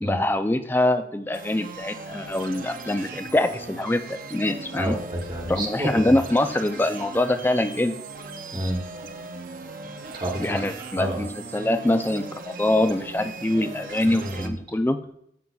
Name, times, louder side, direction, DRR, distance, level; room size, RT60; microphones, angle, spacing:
voice 1, 0.0-4.9 5.5-8.0 10.4-11.3 11.5-15.0, left 1 dB, 10° left, 8 dB, 0.3 m, -24 dB
sound 1, 1.3-14.5, right 3 dB, 50° right, 0.5 m, -39 dB
voice 2, 4.8-6.2 8.5-8.8 10.1-10.7 11.0-11.3 14.0-14.6, right 1 dB, 25° right, 0 dB, 1.1 m, -29 dB
12.0 x 5.5 x 2.3 m, 0.72 s
head